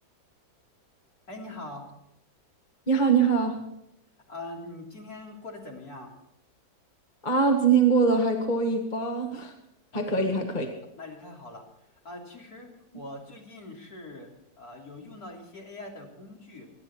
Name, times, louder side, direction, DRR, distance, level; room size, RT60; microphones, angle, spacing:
voice 1, 1.3-1.9 4.3-6.1 9.9-10.4 10.9-11.6 12.0-12.7 12.9-14.3 14.6-16.7, left 2 dB, 55° left, -1 dB, 3.9 m, -42 dB
voice 2, 2.9-3.6 7.2-9.5 9.9-10.7, right 5 dB, 25° left, 2 dB, 1.9 m, -23 dB
28.5 x 9.9 x 4.4 m, 0.81 s
omnidirectional pair, 1.9 m